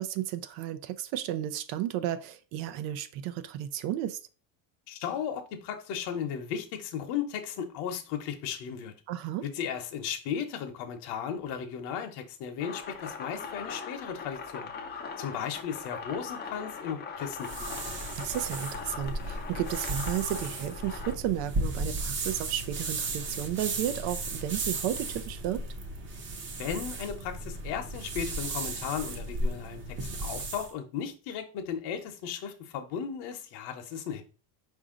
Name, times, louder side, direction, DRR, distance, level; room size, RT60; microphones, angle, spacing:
voice 1, 0.0-4.2 9.1-9.4 18.2-25.6, right 12 dB, 70° right, 0.6 m, -33 dB
voice 2, 4.9-8.9 9.4-14.7 15.2-17.7 26.6-29.8 30.2-34.2, left 8 dB, 60° left, 0.9 m, -35 dB
sound 1, 12.6-21.1, left 5 dB, 25° left, 0.5 m, -40 dB
sound 2, 17.4-30.7, right 2 dB, 25° right, 0.7 m, -35 dB
4.9 x 2.7 x 3.7 m
cardioid pair, 135°, 45 cm